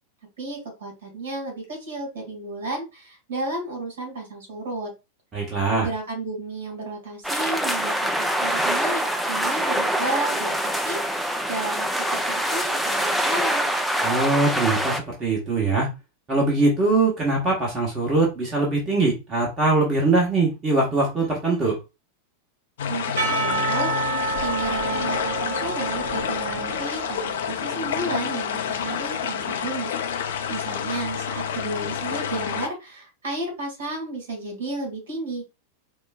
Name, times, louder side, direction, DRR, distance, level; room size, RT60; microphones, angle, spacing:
voice 1, 0.4-4.9 5.8-13.7 22.9-29.9 30.2-35.4, right 2 dB, 60° right, 1 dB, 1.9 m, -32 dB
voice 2, 5.3-5.9 14.0-15.9 16.3-21.7, right 3 dB, 25° right, -2 dB, 1.2 m, -22 dB
sound 1, 7.2-15.0, equal, ahead, 0.5 m, -24 dB
sound 2, 22.8-32.7, left 7 dB, 60° left, 0.5 m, -28 dB
Percussion / Church bell, 23.2-27.6, right 3 dB, 45° right, 1.6 m, -29 dB
5.1 x 2.2 x 2.3 m, 0.26 s
figure-of-eight pair, 90°, 0 cm